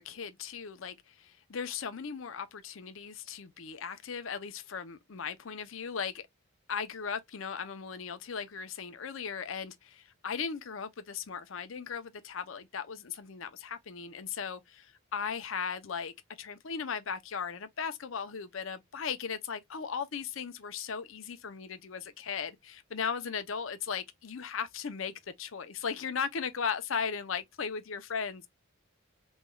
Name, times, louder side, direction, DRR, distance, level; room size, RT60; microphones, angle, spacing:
voice 1, 0.0-6.2 6.7-16.1 16.4-28.5, left 6 dB, 70° left, 0.6 m, -37 dB
3.5 x 3.0 x 2.3 m
head